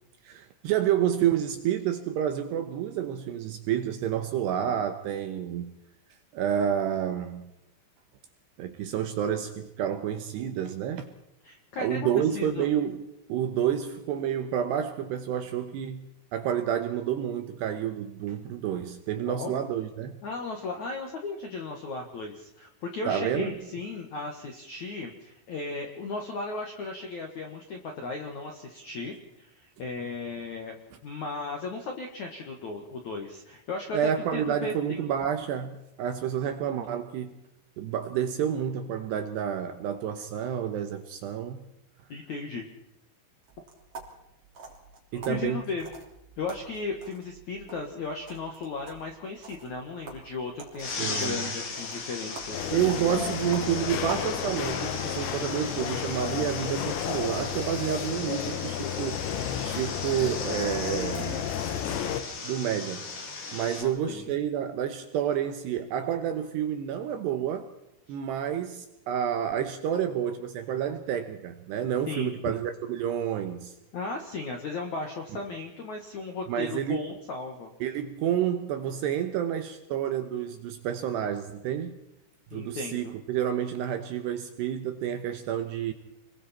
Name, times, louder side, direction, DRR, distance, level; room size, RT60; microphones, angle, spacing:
voice 1, 0.3-5.7 6.3-7.5 8.6-11.1 11.8-16.1 16.3-20.2 23.1-23.5 33.9-37.3 37.8-41.6 45.1-45.6 51.0-51.4 52.7-59.3 59.6-61.5 62.4-63.1 63.5-67.7 68.1-73.7 76.5-77.0 77.8-82.0 82.5-85.9, right 9 dB, 75° right, 7 dB, 2.6 m, -29 dB
voice 2, 11.4-12.7 19.3-19.5 20.2-30.8 31.0-35.0 42.1-42.7 45.1-45.9 46.4-52.6 63.8-64.3 68.1-68.2 72.1-72.6 73.9-77.7 82.5-83.1, left 3 dB, 65° left, 3 dB, 1.8 m, -36 dB
sound 1, 43.4-55.6, right 3 dB, 35° right, 3.3 m, -47 dB
sound 2, 50.8-63.8, left 4 dB, 45° left, 3.9 m, -37 dB
sound 3, 52.5-62.2, left 10 dB, 85° left, 3.9 m, -32 dB
29.0 x 22.0 x 4.4 m, 0.88 s
omnidirectional pair, 5.9 m